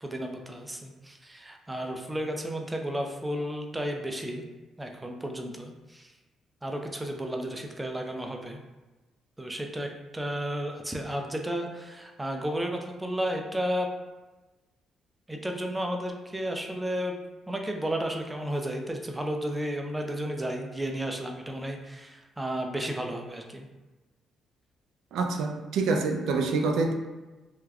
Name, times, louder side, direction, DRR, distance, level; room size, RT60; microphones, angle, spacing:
voice 1, 0.0-4.4 4.8-6.1 6.6-8.6 9.4-13.9 15.3-17.2 17.5-23.7, equal, 10° right, 2 dB, 0.4 m, -33 dB
voice 2, 25.1-26.9, right 3 dB, 80° right, 4 dB, 0.3 m, -26 dB
3.3 x 2.2 x 2.3 m, 1.1 s
cardioid pair, 90°, 0 cm